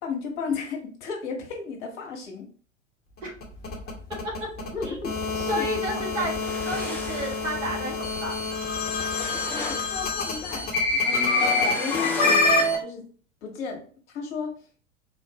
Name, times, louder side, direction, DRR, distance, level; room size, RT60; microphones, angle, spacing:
voice 1, 0.0-2.5 4.7-6.3 8.8-9.0 9.5-13.0 13.4-13.8 14.1-14.6, left 5 dB, 50° left, 1 dB, 1.2 m, -35 dB
sound 1, 3.2-12.8, left 3 dB, 25° left, 1.2 m, -26 dB
voice 2, 5.3-6.3 6.6-8.4, right 1 dB, 70° right, -2 dB, 1.7 m, -31 dB
sound 2, 6.1-12.4, left 2 dB, 5° left, 0.5 m, -38 dB
4.3 x 2.5 x 2.9 m, 0.42 s
figure-of-eight pair, 85°, 39 cm